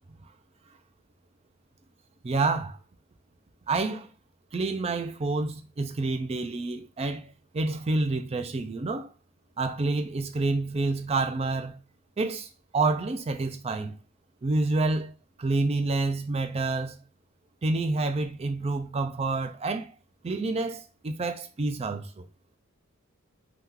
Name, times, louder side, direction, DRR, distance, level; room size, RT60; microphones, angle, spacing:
voice 1, 2.2-2.8 3.7-4.1 4.5-9.1 9.6-11.8 12.2-13.9 14.4-17.0 17.6-19.9 20.2-22.3, right 3 dB, 30° right, 0.4 m, -28 dB
2.9 x 2.4 x 3.6 m
head